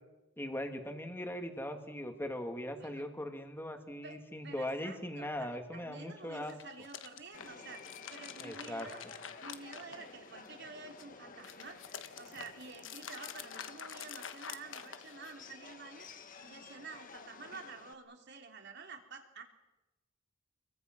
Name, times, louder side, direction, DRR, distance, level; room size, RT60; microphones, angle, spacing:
voice 1, 0.4-6.5 8.4-8.9, left 1 dB, 10° left, 5 dB, 2.3 m, -40 dB
voice 2, 4.0-7.8 8.1-9.1 9.4-11.8 12.2-16.1 16.4-19.4, right 4 dB, 60° right, 4 dB, 3.4 m, -50 dB
sound 1, 6.3-10.5 10.9-15.5, left 8 dB, 75° left, 1.3 m, -48 dB
Subway metro underground, 7.3-17.9, left 4 dB, 45° left, 1.8 m, -53 dB
28.5 x 22.5 x 6.2 m, 1.0 s
head